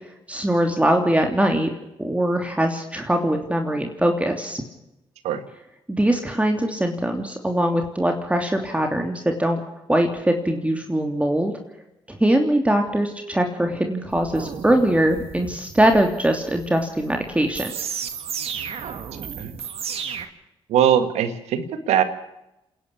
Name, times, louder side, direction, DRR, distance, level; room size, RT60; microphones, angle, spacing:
voice 1, 0.3-1.7 2.0-4.6 5.9-9.6 9.9-11.5 12.1-17.7, right 1 dB, 10° right, 4 dB, 3.1 m, -22 dB
sound 1, 14.1-20.3, right 7 dB, 65° right, 2.1 m, -34 dB
voice 2, 18.8-19.5 20.7-22.0, right 9 dB, 80° right, 10 dB, 1.9 m, -22 dB
27.0 x 11.5 x 8.6 m, 0.89 s
supercardioid pair, 55°, 11 cm